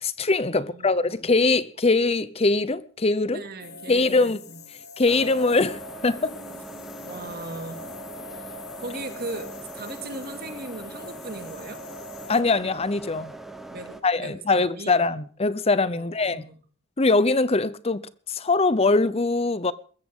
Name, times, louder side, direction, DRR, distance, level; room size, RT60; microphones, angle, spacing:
voice 1, 0.0-3.4 3.9-4.4 5.0-6.3 12.3-13.3 14.0-16.5 17.0-19.7, left 3 dB, 30° left, 0.7 m, -22 dB
voice 2, 0.5-1.1 3.3-4.6 7.0-7.8 8.3-9.5 9.7-11.8 13.7-14.9 15.9-16.6, right 2 dB, 50° right, 2.4 m, -38 dB
sound 1, 3.6-12.4, left 4 dB, 50° left, 1.7 m, -43 dB
sound 2, 5.1-14.0, right 2 dB, ahead, 1.2 m, -41 dB
22.0 x 14.5 x 3.8 m
head